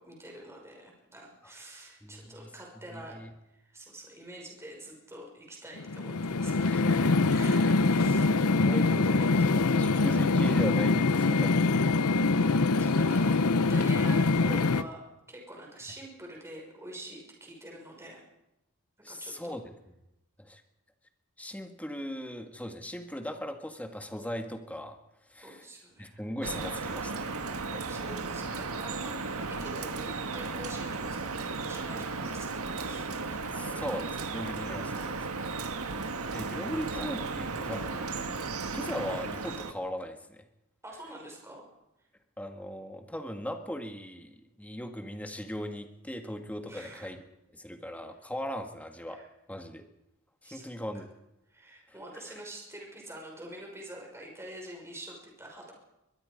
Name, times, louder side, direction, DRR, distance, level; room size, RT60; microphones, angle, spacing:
voice 1, 0.0-3.2 3.5-9.0 9.2-9.9 12.8-18.2 19.1-19.6 25.4-26.2 27.8-32.5 32.8-33.1 33.4-33.6 40.8-41.7 46.7-47.1 49.1-49.3 50.4-50.7 51.5-55.7, right 1 dB, 15° right, 0 dB, 6.0 m, -46 dB
voice 2, 2.0-2.5 2.9-3.3 6.7-7.4 7.6-7.8 8.7-12.2 19.0-19.7 20.4-20.6 21.4-25.0 25.3-25.6 26.0-27.4 27.7-27.9 33.3-35.5 36.3-38.4 38.7-40.4 42.4-47.2 47.5-49.2 49.5-49.8 50.4-51.1 52.1-52.2, equal, 5° left, 5 dB, 1.8 m, -39 dB
sound 1, 5.8-14.8, left 3 dB, 90° left, 0.8 m, -24 dB
Drip, 26.4-39.7, right 4 dB, 80° right, 1.6 m, -35 dB
22.5 x 22.0 x 5.3 m, 0.91 s
head